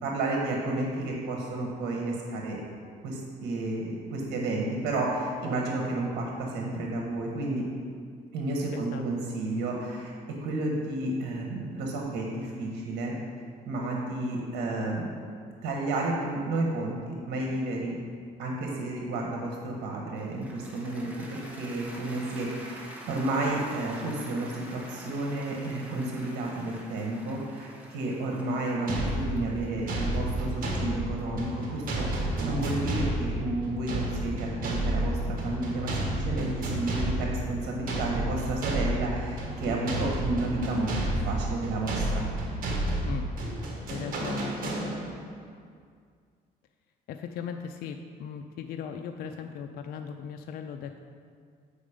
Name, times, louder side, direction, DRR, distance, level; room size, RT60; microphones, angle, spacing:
voice 1, 0.0-2.6 3.0-7.7 8.3-10.1 10.4-13.1 13.6-15.2 15.6-18.0 18.4-42.3, right 2 dB, 80° right, -1 dB, 1.3 m, -31 dB
voice 2, 8.7-9.0 43.0-43.3 43.9-45.0 47.1-51.0, left 7 dB, 65° left, 5 dB, 0.4 m, -38 dB
Cheering / Applause, 20.2-32.4, equal, 10° right, 1.3 m, -47 dB
sound 1, 28.9-45.3, right 1 dB, 55° right, 1.6 m, -31 dB
8.3 x 5.2 x 5.0 m, 2.1 s
cardioid pair, 110°, 17 cm